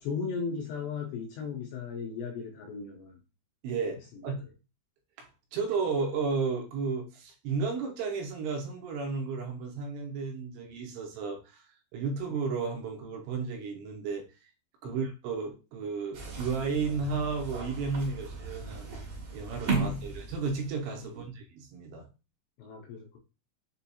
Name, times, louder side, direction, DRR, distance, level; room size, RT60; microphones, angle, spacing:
voice 1, 0.0-3.2 4.1-4.5 14.9-15.0 19.7-20.2 21.1-21.2 22.6-23.2, left 5 dB, 85° left, 2 dB, 2.5 m, -37 dB
voice 2, 3.6-4.4 5.2-14.2 14.8-18.9 19.3-22.1, right 4 dB, 80° right, 1 dB, 2.9 m, -33 dB
sound 1, 16.1-20.9, right 3 dB, 60° right, 2.5 m, -36 dB
6.8 x 2.3 x 2.8 m, 0.31 s
omnidirectional pair, 5.3 m